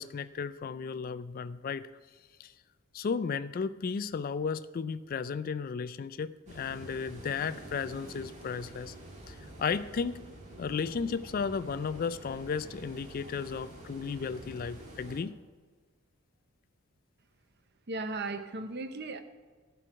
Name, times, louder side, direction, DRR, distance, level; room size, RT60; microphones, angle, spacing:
voice 1, 0.0-1.9 2.4-2.5 2.9-8.9 9.3-10.2 10.6-15.4, left 5 dB, 40° left, 0.3 m, -34 dB
sound 1, 6.5-15.2, right 1 dB, 35° right, 1.7 m, -48 dB
voice 2, 17.9-19.2, right 3 dB, 50° right, 0.7 m, -36 dB
11.0 x 4.7 x 7.9 m
head